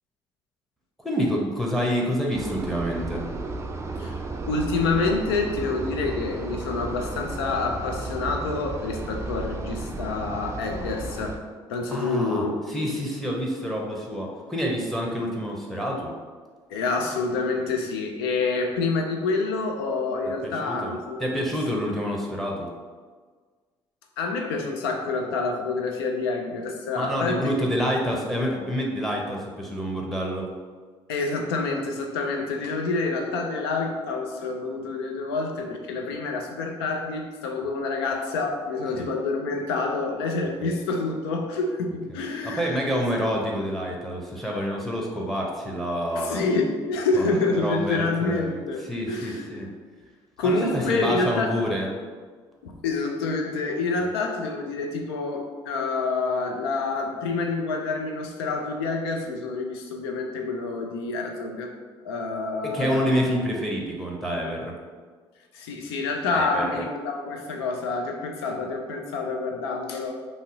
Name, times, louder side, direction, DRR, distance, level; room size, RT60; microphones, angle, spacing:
voice 1, 1.0-3.2 11.9-16.1 20.4-20.9 21.2-22.7 27.0-30.5 39.0-39.1 40.6-40.7 42.1-46.4 47.1-49.7 50.4-51.9 62.6-64.8 66.3-66.8, equal, ahead, -1 dB, 0.7 m, -28 dB
sound 1, 2.3-11.4, right 2 dB, 25° right, 0.4 m, -34 dB
voice 2, 4.5-11.4 11.7-12.6 16.7-21.5 24.2-27.5 31.1-43.0 46.1-49.5 50.4-51.6 52.6-61.7 62.0-63.4 65.5-70.2, left 3 dB, 85° left, 3 dB, 0.4 m, -27 dB
2.6 x 2.0 x 3.7 m, 1.5 s
hypercardioid pair, 55°, 12 cm